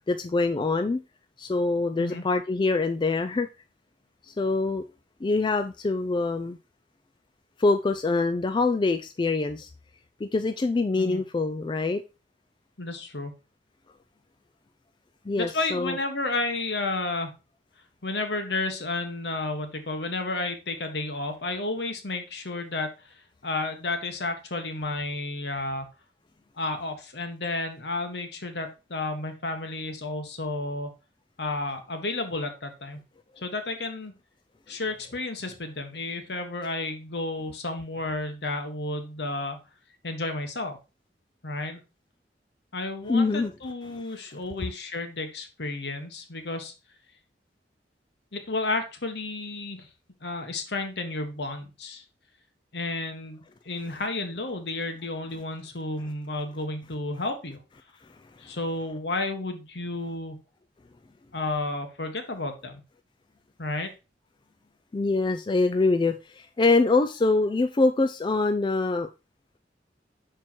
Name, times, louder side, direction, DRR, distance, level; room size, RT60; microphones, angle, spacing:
voice 1, 0.1-1.0 1.4-3.5 4.2-4.8 5.2-6.6 7.6-9.7 10.2-12.0 15.3-16.0 43.1-43.5 64.9-69.1, left 3 dB, 25° left, 7 dB, 0.3 m, -24 dB
voice 2, 12.8-13.3 15.4-17.3 18.0-23.1 23.4-25.9 26.6-30.9 31.4-33.0 33.4-34.1 34.7-39.6 40.0-40.8 41.4-41.8 42.7-46.7 48.3-49.9 50.2-52.0 52.7-57.6 58.4-60.4 61.3-62.8 63.6-63.9, left 2 dB, 65° left, 6 dB, 1.3 m, -32 dB
5.9 x 4.6 x 4.4 m, 0.29 s
head